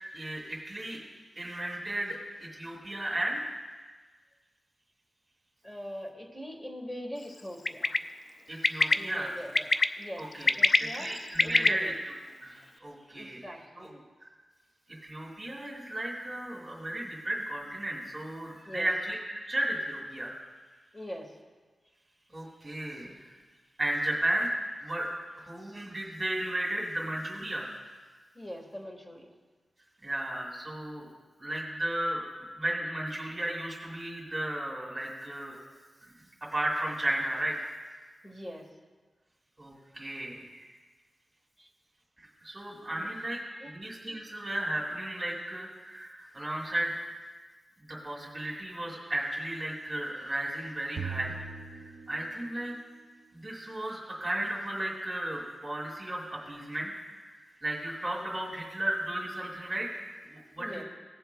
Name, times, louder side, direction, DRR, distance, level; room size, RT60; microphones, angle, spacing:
voice 1, 0.1-1.0 1.4-3.5 8.5-9.4 10.2-10.5 10.8-11.9 12.4-13.4 13.8-13.9 14.2-14.3 15.0-20.3 22.3-23.3 23.8-24.5 24.8-25.1 25.4-27.7 30.0-31.1 31.4-32.2 32.5-35.6 36.0-36.2 36.5-37.7 39.6-40.7 42.2-47.0 47.9-51.3 51.7-52.7 53.3-56.9 57.2-60.8, right 1 dB, 20° right, -3 dB, 2.1 m, -34 dB
voice 2, 5.6-7.9 8.9-9.7 10.0-11.9 13.1-14.0 18.6-18.9 20.9-21.3 28.3-29.3 38.2-38.7 41.6-41.7 42.9-43.1 43.5-43.7 60.6-60.8, equal, 15° left, 1 dB, 1.4 m, -42 dB
Bird, 7.6-8.0 8.6-8.9 9.5-9.8 10.3-11.7, left 3 dB, 45° left, 0.3 m, -23 dB
sound 1, 51.0-52.8, right 5 dB, 80° right, 0.4 m, -40 dB
19.5 x 7.0 x 2.2 m, 1.4 s
wide cardioid pair, 105°, 0 cm